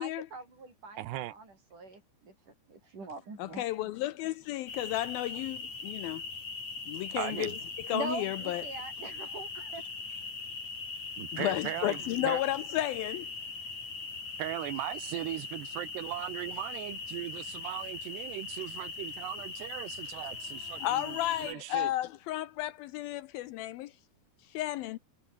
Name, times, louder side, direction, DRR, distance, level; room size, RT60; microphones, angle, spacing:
voice 1, 0.0-2.3 2.7-3.9 7.9-9.8, right 3 dB, 50° right, 9.5 m, -42 dB
voice 2, 1.0-1.3 3.6-3.7 7.2-7.6 10.1-10.2 11.2-12.4 14.4-21.9, right 15 dB, 90° right, 3.3 m, -38 dB
voice 3, 3.4-6.2 6.9-7.5 7.8-8.6 11.3-13.3 20.8-23.9 24.5-25.0, left 15 dB, 75° left, 2.3 m, -33 dB
sound 1, 4.7-21.5, left 4 dB, 45° left, 6.8 m, -40 dB
omnidirectional pair, 4.7 m